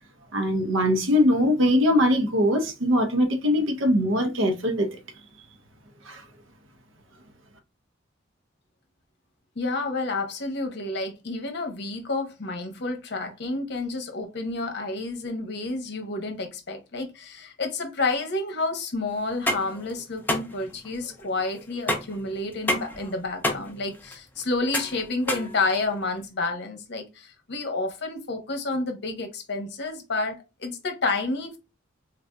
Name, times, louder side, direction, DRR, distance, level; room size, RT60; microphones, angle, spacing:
voice 1, 0.3-4.9 6.1-6.2, left 1 dB, 75° right, 0.7 m, -21 dB
voice 2, 9.6-31.6, left 3 dB, 55° left, 0.9 m, -30 dB
sound 1, 19.2-26.2, left 1 dB, 10° left, 0.6 m, -30 dB
4.0 x 2.6 x 2.2 m
head